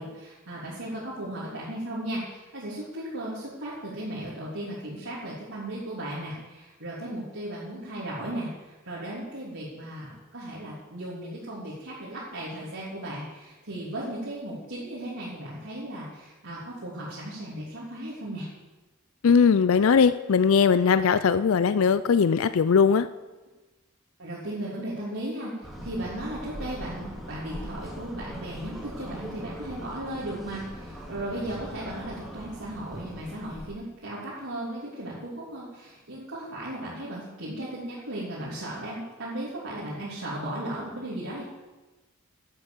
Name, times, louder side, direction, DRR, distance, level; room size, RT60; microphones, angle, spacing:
voice 1, 0.0-18.5 24.2-25.5 25.8-41.4, right 1 dB, 80° right, -8 dB, 3.3 m, -36 dB
voice 2, 19.2-23.1, left 6 dB, 75° left, 14 dB, 0.4 m, -20 dB
sound 1, 25.6-33.7, equal, ahead, 2.2 m, -41 dB
12.0 x 8.1 x 7.8 m, 1.2 s
head